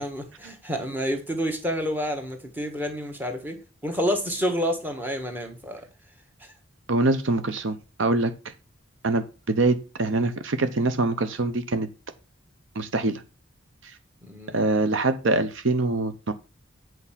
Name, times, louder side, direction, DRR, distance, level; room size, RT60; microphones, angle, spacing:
voice 1, 0.0-5.8 14.2-14.6, equal, 10° right, 1.3 m, -29 dB
voice 2, 6.9-8.3 9.0-11.9 12.8-13.2 13.8-13.9 14.5-16.3, right 2 dB, 65° right, 0.7 m, -24 dB
8.4 x 4.6 x 5.7 m
head